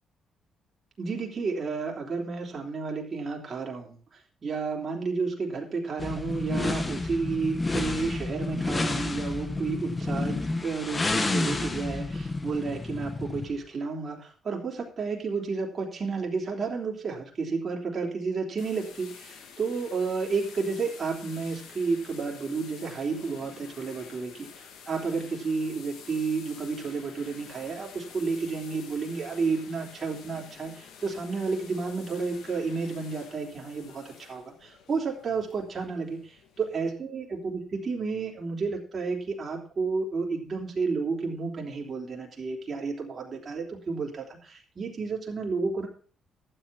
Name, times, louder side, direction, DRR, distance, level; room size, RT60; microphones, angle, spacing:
voice 1, 1.0-4.0 4.4-36.3 36.6-45.9, right 4 dB, 40° right, -1 dB, 3.6 m, -31 dB
sound 1, 6.0-13.6, left 2 dB, 25° left, 1.6 m, -30 dB
sound 2, 18.6-36.9, left 7 dB, 85° left, 2.2 m, -49 dB
12.5 x 8.1 x 5.9 m, 0.42 s
cardioid pair, 90°, 0 cm